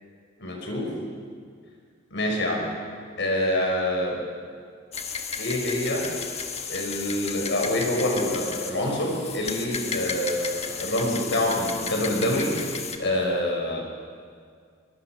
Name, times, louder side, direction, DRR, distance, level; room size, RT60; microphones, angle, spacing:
voice 1, 0.4-0.9 2.1-2.7 3.2-4.2 5.4-6.1 6.7-12.6 13.0-13.8, left 1 dB, 65° left, 0 dB, 5.4 m, -26 dB
sound 1, 4.9-13.0, left 5 dB, 35° left, 1.5 m, -34 dB
23.0 x 22.0 x 6.0 m, 2.1 s
head